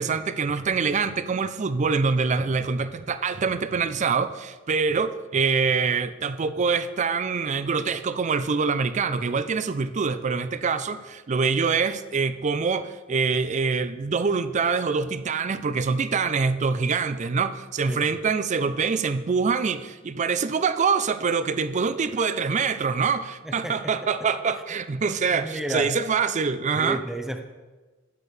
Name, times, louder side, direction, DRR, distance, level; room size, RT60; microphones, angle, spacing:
voice 1, 0.0-27.0, right 5 dB, 35° right, 13 dB, 0.4 m, -25 dB
voice 2, 17.8-18.2 23.4-23.9 25.3-25.9 26.7-27.4, right 1 dB, ahead, 5 dB, 0.7 m, -32 dB
12.0 x 9.1 x 3.3 m, 1.3 s
head